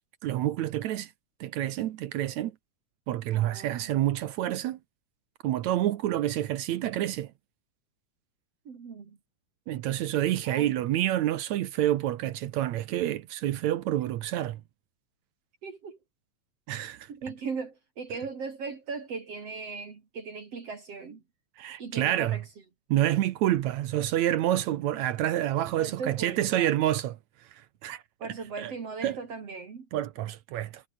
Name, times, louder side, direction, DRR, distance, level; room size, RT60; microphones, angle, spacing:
voice 1, 0.2-1.1 1.4-2.5 3.1-4.8 5.4-7.3 9.7-14.6 16.7-17.1 21.6-22.4 22.9-27.2 27.5-28.0 28.6-28.7 29.0-29.2 29.9-30.8, right 13 dB, 70° right, 2.0 m, -28 dB
voice 2, 3.3-3.9 8.7-9.2 10.5-10.9 15.6-16.0 17.1-21.2 21.8-22.5 25.8-26.8 28.2-29.9, right 5 dB, 50° right, 3.8 m, -38 dB
omnidirectional pair, 3.7 m